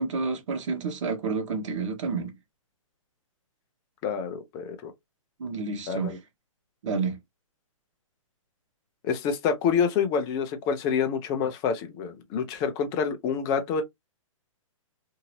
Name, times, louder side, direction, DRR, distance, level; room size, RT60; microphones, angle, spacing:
voice 1, 0.0-2.3 5.4-6.2 6.8-7.2, right 4 dB, 60° right, 1.2 m, -29 dB
voice 2, 4.0-4.9 5.9-6.2 9.0-13.8, left 6 dB, 20° left, 0.5 m, -27 dB
2.8 x 2.7 x 2.8 m
hypercardioid pair, 155°, 18 cm